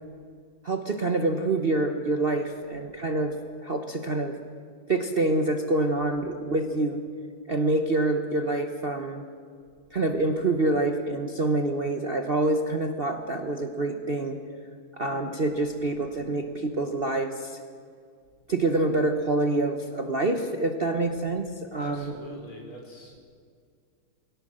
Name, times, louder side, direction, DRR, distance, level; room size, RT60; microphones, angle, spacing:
voice 1, 0.6-3.3 3.6-4.4 4.9-7.0 7.5-9.2 9.9-14.4 14.9-17.6 18.5-22.1, right 2 dB, 40° right, 5 dB, 0.8 m, -26 dB
voice 2, 21.8-23.2, equal, 80° left, 0 dB, 5.1 m, -43 dB
21.0 x 17.5 x 7.5 m, 2.1 s
omnidirectional pair, 2.3 m